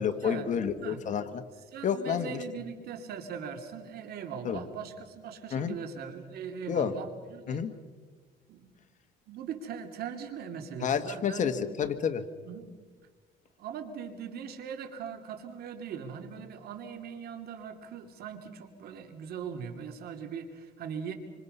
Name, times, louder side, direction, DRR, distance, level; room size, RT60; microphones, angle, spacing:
voice 1, 0.0-1.4 1.8-2.4 4.4-4.6 5.5-5.7 6.7-7.0 7.5-7.7 10.8-12.2, left 7 dB, 50° left, 10 dB, 1.5 m, -30 dB
voice 2, 1.7-7.7 8.5-8.7 9.3-11.7 12.5-12.7 13.6-21.1, right 7 dB, 65° right, 6 dB, 2.9 m, -40 dB
26.5 x 25.5 x 5.6 m, 1.5 s
cardioid pair, 110°, 17 cm